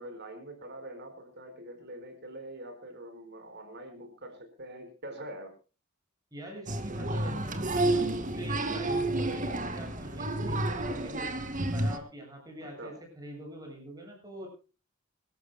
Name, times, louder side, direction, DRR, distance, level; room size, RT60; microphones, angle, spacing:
voice 1, 0.0-5.5 12.8-12.9, right 1 dB, 55° right, 7 dB, 4.7 m, -44 dB
voice 2, 6.3-11.3 11.7-14.5, equal, 20° right, 2 dB, 7.6 m, -44 dB
Applause, 6.7-12.0, right 2 dB, 40° right, 2.2 m, -30 dB
28.0 x 13.0 x 2.2 m, 0.35 s
head